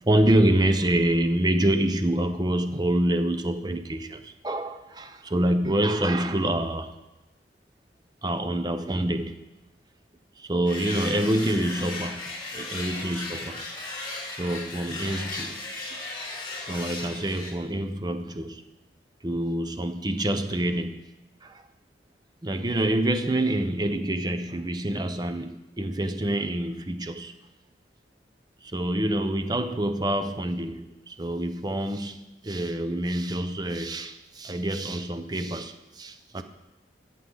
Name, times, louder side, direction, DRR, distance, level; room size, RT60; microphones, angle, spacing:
voice 1, 0.1-6.9 8.2-9.4 10.4-12.2 12.5-13.7 14.4-15.6 16.7-18.6 19.2-21.0 21.4-21.6 22.4-27.3 28.6-36.4, right 1 dB, 25° right, 0.6 m, -26 dB
sound 1, 10.7-17.5, left 2 dB, 25° left, 1.9 m, -36 dB
14.0 x 8.5 x 3.8 m
head